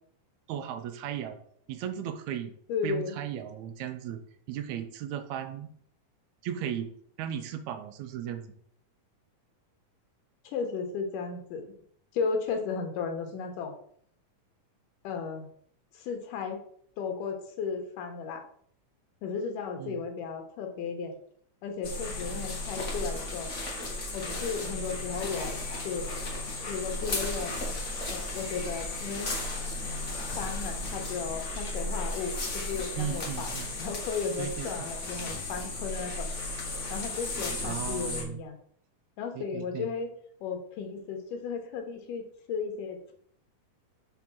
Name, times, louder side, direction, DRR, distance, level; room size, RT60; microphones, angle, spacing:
voice 1, 0.5-1.4 1.7-2.5 2.8-4.2 4.5-5.7 6.4-8.5 19.8-20.0 33.0-33.7 34.4-34.9 37.6-38.4 39.3-39.9, right 9 dB, 75° right, 8 dB, 1.7 m, -36 dB
voice 2, 2.7-3.2 10.4-11.7 12.1-13.7 15.0-15.5 15.9-16.6 17.0-18.4 19.2-21.1 21.6-23.5 24.1-25.6 25.8-26.1 26.7-27.5 28.1-29.3 30.4-33.5 33.8-36.3 36.9-38.6 39.2-40.1 40.4-43.1, left 5 dB, 85° left, 4 dB, 2.6 m, -34 dB
sound 1, 21.8-38.2, left 2 dB, 65° left, 0.7 m, -35 dB
5.8 x 3.8 x 5.9 m, 0.63 s
omnidirectional pair, 3.7 m